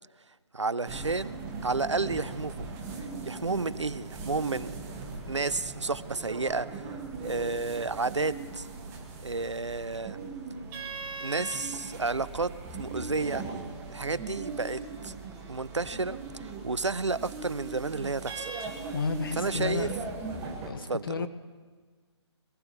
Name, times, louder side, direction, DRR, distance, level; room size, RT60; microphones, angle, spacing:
voice 1, 0.5-2.7 3.2-4.7 5.3-6.9 7.2-8.7 9.2-10.2 11.2-13.5 13.9-15.1 15.5-18.6 19.4-19.9 20.9-21.3, right 3 dB, 85° right, 17 dB, 0.6 m, -31 dB
sound 1, 0.9-20.7, right 4 dB, 15° right, 1.7 m, -39 dB
voice 2, 18.9-19.9 20.7-21.3, left 4 dB, 50° left, 11 dB, 0.8 m, -32 dB
23.0 x 14.0 x 3.1 m, 1.5 s
figure-of-eight pair, 145°, 15 cm